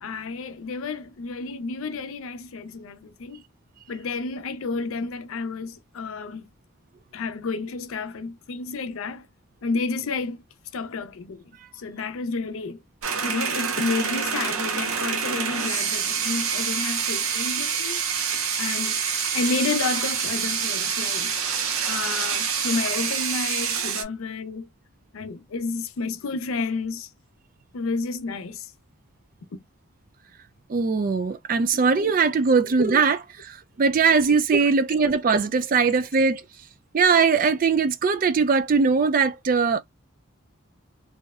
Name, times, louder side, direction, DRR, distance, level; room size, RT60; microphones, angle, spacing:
voice 1, 0.0-3.4 3.9-6.4 7.1-9.2 9.6-10.4 10.7-11.4 11.8-12.8 13.2-18.0 18.6-19.0 19.3-21.4 21.8-24.7 25.1-27.1 27.7-28.7 29.5-29.6 31.7-31.9 32.5-32.8, left 4 dB, 80° left, 0.5 m, -30 dB
sound 1, 13.0-24.0, right 6 dB, 85° right, 0.6 m, -26 dB
voice 2, 30.7-36.4 36.9-39.8, right 5 dB, 40° right, 0.3 m, -21 dB
2.7 x 2.0 x 2.3 m
head